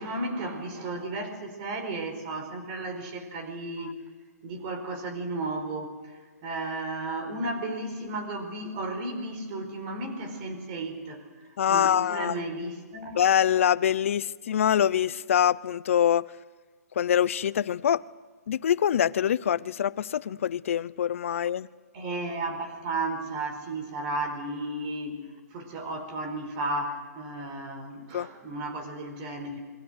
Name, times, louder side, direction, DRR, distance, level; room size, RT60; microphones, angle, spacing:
voice 1, 0.0-3.9 4.4-11.2 11.7-13.2 21.9-25.2 25.5-29.6, right 2 dB, 30° right, 4.6 m, -34 dB
voice 2, 11.6-12.4 13.1-16.3 17.0-18.0 18.5-21.7 28.1-28.3, left 9 dB, 50° left, 0.7 m, -24 dB
28.0 x 22.0 x 6.4 m
hypercardioid pair, 160°, 9 cm